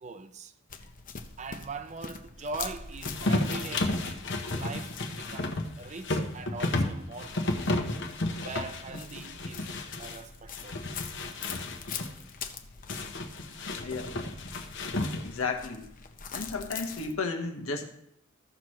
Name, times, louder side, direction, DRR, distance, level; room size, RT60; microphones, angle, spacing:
voice 1, 0.0-0.5 1.4-8.0 8.4-9.7 10.0-10.8, right 4 dB, 35° right, 0.5 m, -41 dB
sound 1, 0.7-17.1, left 6 dB, 40° left, 0.7 m, -44 dB
sound 2, 3.0-10.2 10.5-12.1 12.9-15.5, left 2 dB, 60° left, 1.1 m, -32 dB
voice 2, 13.7-14.1 15.2-15.9 16.3-17.9, left 4 dB, 90° left, 1.3 m, -33 dB
15.0 x 6.1 x 3.2 m
head